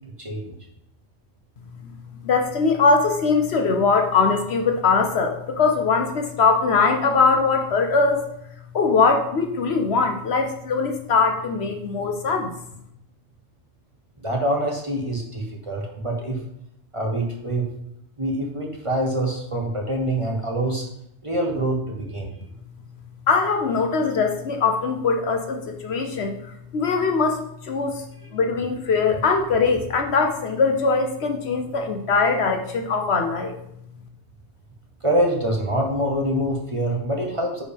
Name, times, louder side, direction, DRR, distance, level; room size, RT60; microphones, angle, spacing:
voice 1, 0.2-0.6 14.2-16.4 16.9-17.7 18.2-20.8 21.2-22.3 28.2-28.4 35.0-37.6, right 1 dB, 25° right, 0 dB, 1.2 m, -25 dB
voice 2, 2.2-8.2 8.7-12.5 23.3-26.4 26.7-28.0 28.3-33.6, left 4 dB, 60° left, 4 dB, 1.0 m, -21 dB
9.7 x 4.8 x 3.4 m, 0.77 s
omnidirectional pair, 1.3 m